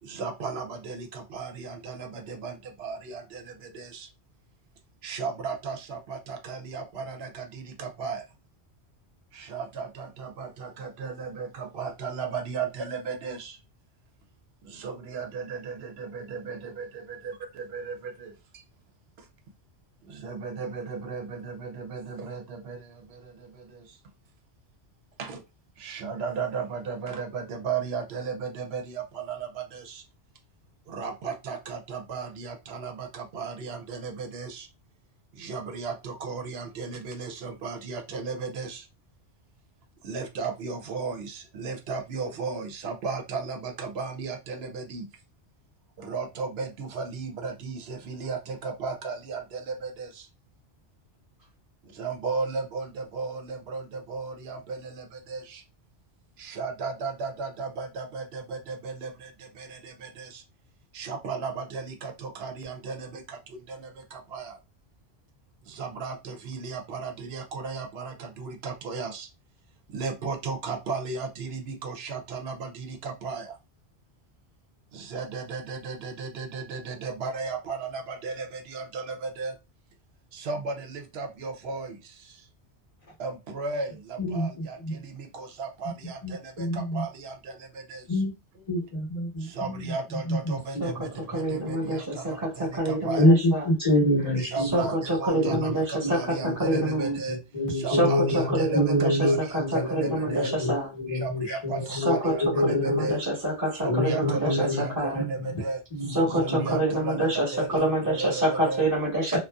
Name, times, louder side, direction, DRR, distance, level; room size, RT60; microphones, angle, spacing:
voice 1, 0.0-4.1 5.0-8.3 9.3-13.6 14.6-18.6 19.2-19.3 20.0-24.0 25.2-25.4 25.8-30.0 30.9-34.7 35.3-38.9 40.0-45.1 46.0-50.3 51.8-55.6 56.4-60.4 60.9-64.6 65.6-69.3 69.9-73.6 74.9-79.6 80.3-82.5 83.2-88.2 88.6-88.7 89.4-93.3 94.4-97.4 97.7-100.5 101.1-103.2 103.7-105.8 106.4-108.9, right 4 dB, 70° right, 4 dB, 0.8 m, -35 dB
voice 2, 84.2-84.9 86.2-87.0 88.1-88.3 88.7-89.9 90.3-90.9 93.2-94.9 95.3-95.7 96.0-103.2 103.8-105.6 105.9-106.8, left 1 dB, 35° left, -2 dB, 0.8 m, -27 dB
voice 3, 90.8-93.7 94.6-97.2 97.9-100.9 101.9-102.3 102.6-105.2 106.1-109.4, right 1 dB, 35° right, -4 dB, 1.1 m, -27 dB
2.5 x 2.2 x 2.2 m, 0.26 s
omnidirectional pair, 1.2 m